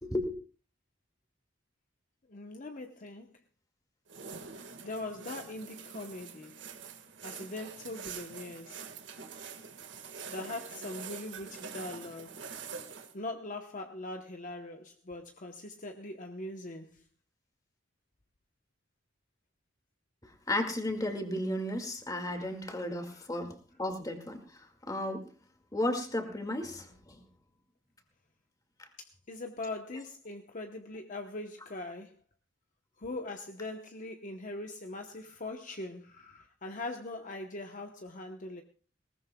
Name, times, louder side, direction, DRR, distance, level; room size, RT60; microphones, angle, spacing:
voice 1, 0.0-0.3 20.5-25.3 25.7-27.2 28.8-28.9, left 1 dB, 20° left, 4 dB, 2.1 m, -34 dB
voice 2, 2.3-3.3 4.8-6.6 7.2-8.8 10.3-12.4 13.1-17.0 22.3-22.5 22.8-23.3 29.0-32.2 33.0-38.6, left 2 dB, 45° left, 4 dB, 1.0 m, -41 dB
sound 1, 4.1-13.1, right 6 dB, 75° right, 1.7 m, -45 dB
20.5 x 18.5 x 2.3 m, 0.37 s
head